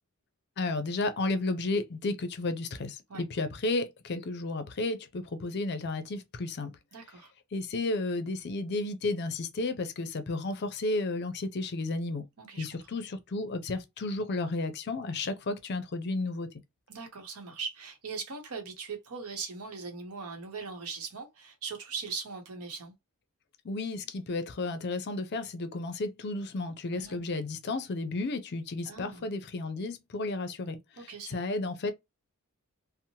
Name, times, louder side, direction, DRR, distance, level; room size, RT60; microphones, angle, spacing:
voice 1, 0.6-6.7 7.5-12.3 12.6-16.5 23.6-31.9, left 2 dB, 50° left, 0.5 m, -33 dB
voice 2, 6.9-7.3 12.4-12.6 16.9-22.9 26.9-27.2 28.9-29.3 31.0-31.4, right 5 dB, 90° right, 0.8 m, -40 dB
2.9 x 2.0 x 2.7 m
head